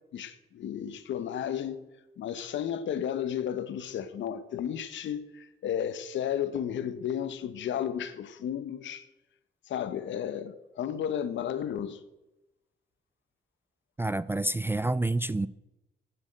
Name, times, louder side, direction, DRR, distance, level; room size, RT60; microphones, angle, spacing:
voice 1, 0.1-1.8 2.2-9.1 9.7-12.0, left 9 dB, 70° left, 1.0 m, -33 dB
voice 2, 14.0-15.5, right 2 dB, 10° right, 0.3 m, -28 dB
9.0 x 8.5 x 8.8 m
cardioid pair, 90°, 20 cm